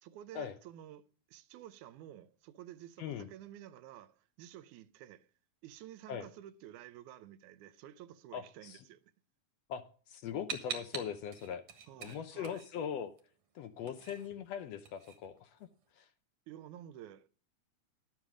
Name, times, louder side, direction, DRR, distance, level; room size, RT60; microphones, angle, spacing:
voice 1, 0.0-5.3 5.6-9.0 11.9-12.6 16.5-17.3, right 12 dB, 85° right, 2.1 m, -51 dB
voice 2, 8.3-8.8 9.7-9.8 10.1-11.6 12.0-13.1 13.5-15.6 16.0-16.1, left 8 dB, 70° left, 1.7 m, -40 dB
sound 1, 10.5-13.2 13.5-15.9, right 6 dB, 55° right, 2.4 m, -45 dB
12.0 x 7.5 x 4.9 m
omnidirectional pair, 3.4 m